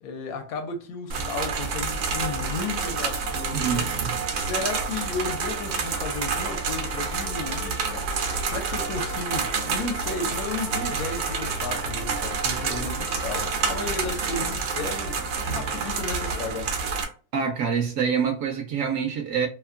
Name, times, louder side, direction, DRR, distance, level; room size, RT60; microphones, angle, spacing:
voice 1, 0.0-3.9 4.3-8.1 8.4-16.7, left 4 dB, 75° left, 1.0 m, -34 dB
sound 1, 1.1-17.0, right 5 dB, 85° right, 1.1 m, -28 dB
voice 2, 3.5-4.2 17.3-19.5, right 7 dB, 70° right, 0.9 m, -26 dB
sound 2, 5.5-16.4, left 3 dB, 50° left, 0.8 m, -42 dB
2.8 x 2.4 x 2.4 m
omnidirectional pair, 1.6 m